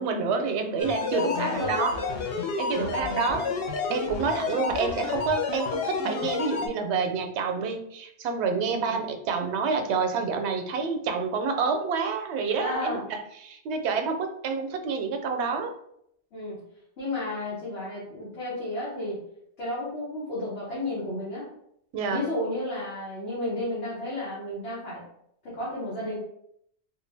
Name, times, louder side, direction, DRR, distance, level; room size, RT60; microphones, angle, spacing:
voice 1, 0.0-2.0 2.6-3.5 3.9-13.0 13.4-15.7 21.9-22.2, right 5 dB, 85° right, 5 dB, 0.8 m, -28 dB
sound 1, 0.8-6.7, left 4 dB, 70° left, 0.8 m, -30 dB
voice 2, 1.1-2.2 2.7-3.5 8.8-9.0 12.6-13.0 16.3-16.6 17.0-19.2 19.6-21.5 22.1-25.0 25.5-26.2, left 1 dB, 90° left, -8 dB, 1.4 m, -32 dB
3.7 x 2.2 x 3.2 m, 0.73 s
omnidirectional pair, 1.1 m